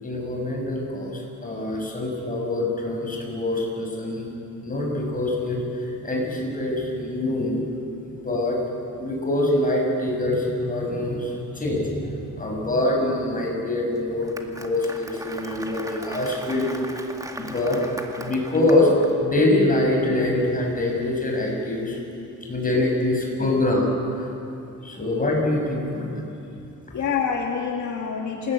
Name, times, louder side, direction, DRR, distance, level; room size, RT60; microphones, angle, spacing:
voice 1, 0.0-4.3 4.6-7.5 8.2-8.6 9.0-16.9 17.4-18.9 19.2-22.0 22.5-23.8 24.1-24.3 24.8-26.2, left 1 dB, 25° left, 0 dB, 6.8 m, -24 dB
Applause, 14.0-19.1, right 1 dB, 10° right, 2.1 m, -38 dB
voice 2, 26.9-28.5, left 6 dB, 60° left, 1 dB, 2.2 m, -27 dB
28.0 x 20.0 x 9.0 m, 2.8 s
cardioid pair, 125°, 32 cm